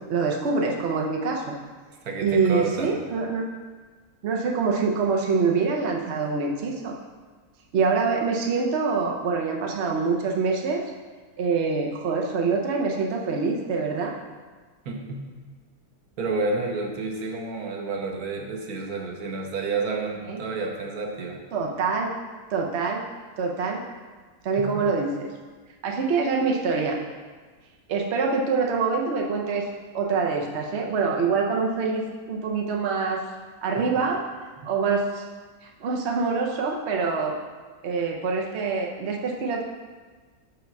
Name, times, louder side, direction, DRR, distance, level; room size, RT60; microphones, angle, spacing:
voice 1, 0.0-1.6 2.2-3.5 4.2-6.9 7.7-10.8 11.4-14.1 20.3-20.4 21.5-22.1 22.5-23.0 23.4-23.8 24.4-25.3 25.8-27.0 27.9-29.7 29.9-33.2 33.6-34.2 34.6-35.2 35.8-37.3 37.8-39.6, right 4 dB, 55° right, 0 dB, 1.0 m, -25 dB
voice 2, 2.0-3.0 14.8-15.4 16.2-21.4 24.6-24.9 33.8-33.9, right 3 dB, 85° right, 1 dB, 1.3 m, -30 dB
5.2 x 4.5 x 5.8 m, 1.4 s
omnidirectional pair, 1.5 m